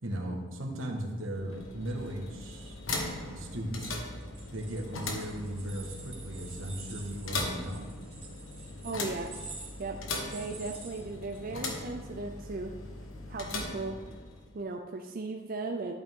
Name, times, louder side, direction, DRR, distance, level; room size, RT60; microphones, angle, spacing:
voice 1, 0.0-2.8 3.3-4.0 4.5-7.9, right 1 dB, 80° right, 1 dB, 1.6 m, -37 dB
sound 1, 1.3-14.6, left 2 dB, 90° left, 1.4 m, -39 dB
sound 2, 4.2-11.6, right 4 dB, 25° right, 2.6 m, -48 dB
voice 2, 8.8-9.3 9.8-12.7 13.3-14.0 14.5-15.9, right 3 dB, 45° right, 3 dB, 0.5 m, -37 dB
11.5 x 8.7 x 3.7 m, 1.4 s
head